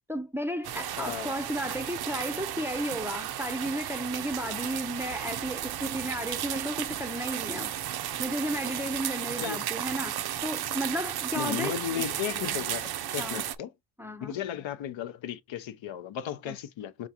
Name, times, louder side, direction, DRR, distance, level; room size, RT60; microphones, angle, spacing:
voice 1, 0.1-7.7 8.2-12.0 12.4-12.5 13.2-13.4 14.0-14.4 16.5-16.6, equal, 5° right, 0.5 m, -34 dB
sound 1, 0.6-13.6, right 11 dB, 55° right, 0.5 m, -34 dB
voice 2, 1.0-1.4 9.4-9.7 11.3-13.7 14.2-17.1, left 10 dB, 70° left, 0.6 m, -35 dB
6.1 x 2.4 x 2.8 m
cardioid pair, 65°, 48 cm